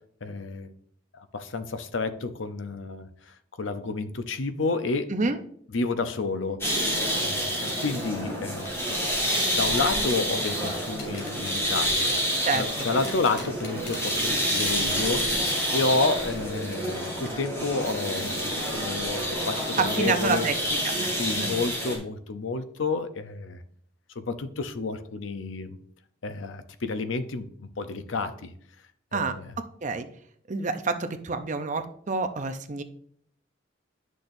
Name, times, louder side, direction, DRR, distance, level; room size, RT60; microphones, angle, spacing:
voice 1, 0.2-0.7 1.1-3.1 3.6-5.1 5.7-6.6 7.2-9.0 9.6-12.1 12.6-15.3 15.7-20.5 21.1-23.6 24.2-25.8 26.2-28.5 29.1-29.5, left 3 dB, 80° left, 10 dB, 0.7 m, -30 dB
sound 1, 6.6-22.0, equal, 15° left, 2.5 m, -28 dB
sound 2, 8.7-9.0 9.6-15.9 16.2-16.3 16.7-16.8 17.3-17.5 17.8-18.1 18.4-18.6, left 3 dB, 55° left, 2.4 m, -43 dB
voice 2, 12.4-12.9 19.8-20.5 20.8-21.6 29.1-30.1 30.5-32.8, right 4 dB, 40° right, 9 dB, 0.6 m, -28 dB
10.5 x 6.4 x 2.6 m, 0.63 s
head